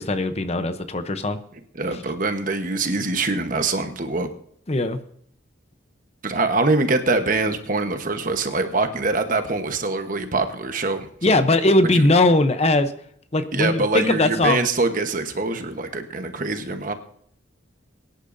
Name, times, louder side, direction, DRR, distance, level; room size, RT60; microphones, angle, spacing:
voice 1, 0.0-1.4 1.9-2.0 4.7-5.0 11.2-12.9 13.3-14.7, left 2 dB, 35° left, 10 dB, 0.7 m, -20 dB
voice 2, 1.7-4.3 6.2-11.4 11.9-12.1 13.5-16.9, right 3 dB, 45° right, 7 dB, 1.1 m, -24 dB
22.5 x 10.0 x 2.7 m, 0.64 s
head